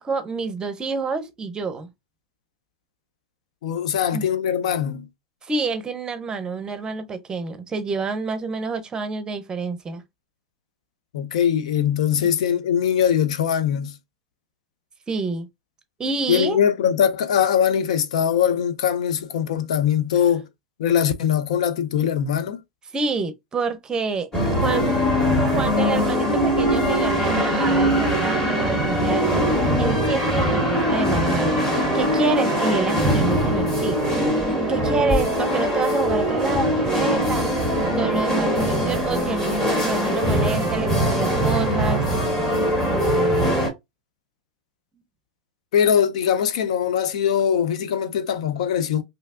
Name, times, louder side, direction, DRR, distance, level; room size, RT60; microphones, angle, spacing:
voice 1, 0.0-1.9 4.1-4.3 5.4-10.0 12.2-12.3 15.1-15.5 16.0-16.6 22.9-24.3 24.6-25.0 25.6-37.5 37.9-42.0, right 4 dB, 20° right, 0.6 m, -28 dB
voice 2, 3.6-5.1 11.1-13.9 16.3-20.5 20.8-22.6 45.7-49.0, left 8 dB, 75° left, 0.5 m, -21 dB
sound 1, 24.3-43.7, equal, 15° left, 1.8 m, -21 dB
3.2 x 2.8 x 2.4 m
hypercardioid pair, 110°, 4 cm